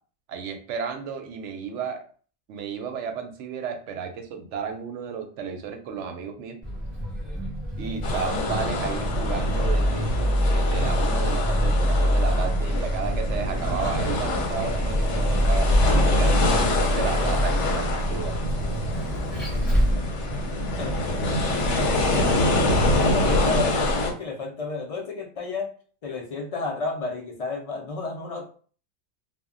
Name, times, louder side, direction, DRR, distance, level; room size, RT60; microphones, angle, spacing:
voice 1, 0.3-2.0 2.5-6.6 7.8-10.1 10.5-15.8 16.1-18.4, right 6 dB, 85° right, 5 dB, 0.9 m, -33 dB
Vehicle, 6.6-23.5, equal, ahead, 0.9 m, -26 dB
sound 1, 8.0-24.1, left 1 dB, 80° left, 1.0 m, -26 dB
voice 2, 20.8-25.7 26.0-28.6, left 3 dB, 55° left, 1 dB, 0.4 m, -32 dB
2.1 x 2.1 x 3.6 m, 0.42 s
omnidirectional pair, 1.2 m